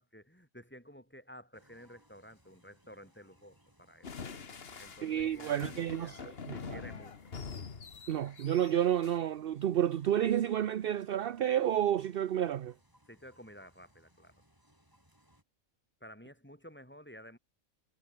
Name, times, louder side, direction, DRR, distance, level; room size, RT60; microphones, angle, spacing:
voice 1, 0.0-4.1 4.8-7.3 13.1-14.3 16.0-17.4, equal, 10° left, 6.5 m, -53 dB
sound 1, 1.5-15.4, equal, 15° right, 8.0 m, -67 dB
sound 2, 4.0-9.2, left 5 dB, 50° left, 1.6 m, -45 dB
voice 2, 5.0-6.2 6.5-6.8 8.1-12.7, right 10 dB, 55° right, 0.7 m, -30 dB
omnidirectional pair, 1.4 m